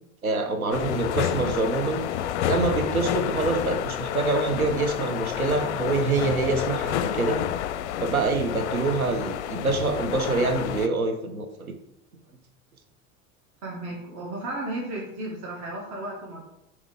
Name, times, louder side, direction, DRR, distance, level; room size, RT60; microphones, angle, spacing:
voice 1, 0.2-2.0 2.5-7.4 8.0-11.7, right 3 dB, 80° right, 6 dB, 1.0 m, -26 dB
sound 1, 0.7-10.9, left 10 dB, 55° left, 0.5 m, -29 dB
voice 2, 13.6-16.4, right 1 dB, 40° right, -2 dB, 1.7 m, -34 dB
7.2 x 3.3 x 4.9 m, 0.79 s
figure-of-eight pair, 80°, 42 cm